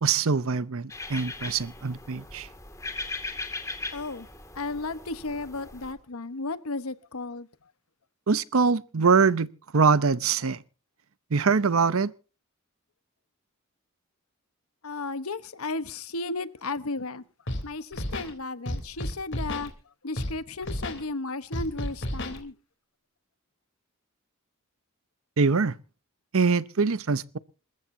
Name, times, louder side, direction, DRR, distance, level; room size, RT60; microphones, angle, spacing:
voice 1, 0.0-2.5 8.3-9.5 9.7-10.6 11.3-12.1 25.4-25.8 26.3-27.4, right 5 dB, 75° right, 0.7 m, -23 dB
sound 1, 0.9-5.9, left 3 dB, 15° left, 2.2 m, -39 dB
voice 2, 3.9-4.3 4.5-7.5 14.8-17.2 17.6-19.7 20.0-22.5, left 3 dB, 85° left, 1.1 m, -34 dB
Scratching (performance technique), 17.5-17.6 17.9-18.3 18.7-19.7 20.2-20.3 20.6-21.0 21.5-22.4, left 1 dB, 55° left, 3.5 m, -31 dB
27.5 x 14.5 x 2.7 m
head